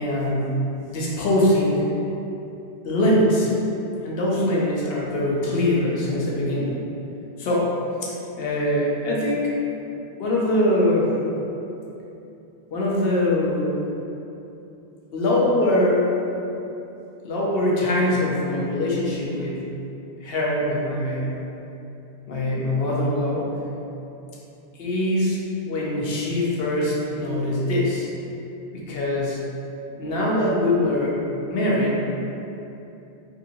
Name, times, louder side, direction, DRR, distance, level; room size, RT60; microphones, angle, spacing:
voice 1, 0.0-1.9 2.8-3.5 4.0-6.8 7.4-7.7 8.0-9.5 10.2-11.2 12.7-13.7 15.1-16.1 17.2-19.7 20.2-21.3 22.3-23.5 24.8-28.1 28.7-29.4 29.9-31.2 31.5-32.0, left 1 dB, 65° left, -4 dB, 0.8 m, -23 dB
3.7 x 2.8 x 2.5 m, 2.9 s
omnidirectional pair, 1.1 m